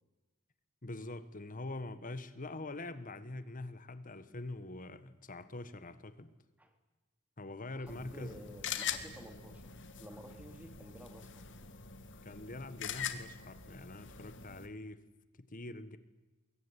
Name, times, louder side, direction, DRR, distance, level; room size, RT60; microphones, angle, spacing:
voice 1, 0.8-6.3 7.4-8.4 12.2-15.0 15.5-16.0, left 2 dB, 40° left, 1.4 m, -44 dB
voice 2, 7.8-11.7, equal, 5° right, 3.4 m, -53 dB
sound 1, 7.9-14.7, left 8 dB, 55° left, 2.2 m, -43 dB
24.5 x 22.0 x 9.9 m
head